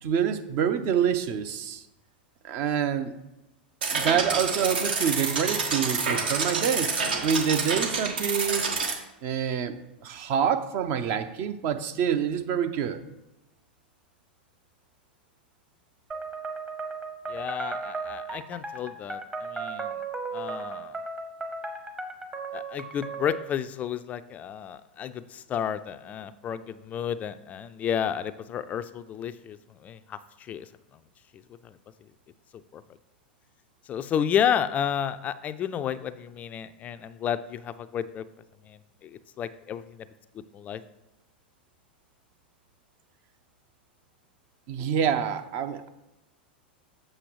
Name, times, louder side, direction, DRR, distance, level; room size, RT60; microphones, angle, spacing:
voice 1, 0.0-1.8 2.4-3.1 3.9-6.9 7.2-8.7 9.2-13.0 44.7-45.9, right 8 dB, 45° right, 9 dB, 0.6 m, -27 dB
sound 1, 3.8-8.9, right 4 dB, 70° right, 1.2 m, -28 dB
sound 2, 16.1-23.5, right 4 dB, 20° right, 0.9 m, -36 dB
voice 2, 17.3-20.0 20.3-21.0 22.5-30.7 31.6-31.8 32.7-32.8 33.9-38.2 38.7-40.1 40.3-40.8, left 9 dB, 30° left, 12 dB, 0.3 m, -31 dB
7.6 x 6.3 x 3.1 m, 0.94 s
hypercardioid pair, 95°, 5 cm